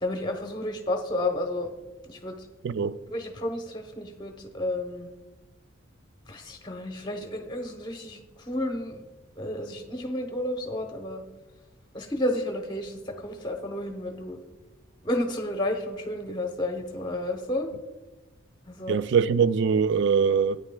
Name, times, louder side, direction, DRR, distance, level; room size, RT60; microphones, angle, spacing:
voice 1, 0.0-1.7 2.1-2.5 3.1-5.1 6.3-9.0 9.4-11.2 11.9-14.4 15.0-17.7 18.7-19.0, left 1 dB, 20° left, 0.9 m, -31 dB
voice 2, 2.6-3.0 18.9-20.6, right 6 dB, 60° right, 0.3 m, -22 dB
13.0 x 9.5 x 2.3 m
head